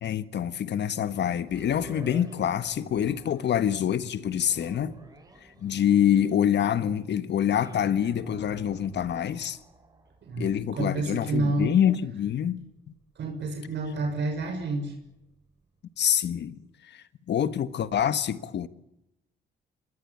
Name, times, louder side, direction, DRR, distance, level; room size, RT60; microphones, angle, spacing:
voice 1, 0.0-5.0 5.6-9.6 10.4-12.6 16.0-16.6 16.9-18.7, left 9 dB, 60° left, 1.5 m, -26 dB
sound 1, 1.4-15.6 16.1-16.2, right 2 dB, 20° right, 7.7 m, -51 dB
voice 2, 10.2-11.7 13.2-14.9, right 2 dB, 65° right, 6.8 m, -29 dB
26.0 x 20.0 x 8.7 m
cardioid pair, 90°, 20 cm